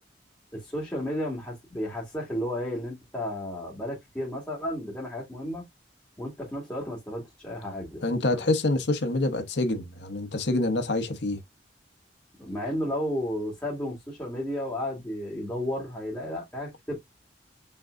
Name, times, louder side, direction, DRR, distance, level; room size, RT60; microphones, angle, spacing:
voice 1, 0.5-5.6 6.2-8.0 8.3-8.4 12.4-16.9, left 1 dB, 10° left, 2.3 m, -33 dB
voice 2, 8.0-11.4, left 2 dB, 75° left, 1.0 m, -26 dB
5.7 x 3.7 x 2.5 m
head